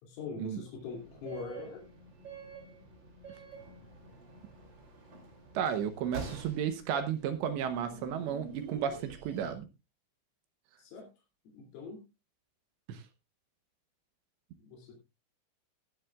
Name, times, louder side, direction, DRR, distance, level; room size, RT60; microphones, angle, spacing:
voice 1, 0.0-1.9 10.8-11.1 11.5-12.0 14.6-14.9, left 4 dB, 75° left, 1 dB, 5.4 m, -43 dB
sound 1, 0.7-9.5, right 4 dB, 30° right, 2.3 m, -48 dB
voice 2, 5.5-9.7 12.9-13.0, right 8 dB, 75° right, 9 dB, 2.8 m, -33 dB
17.0 x 11.0 x 2.4 m, 0.26 s
omnidirectional pair, 6.0 m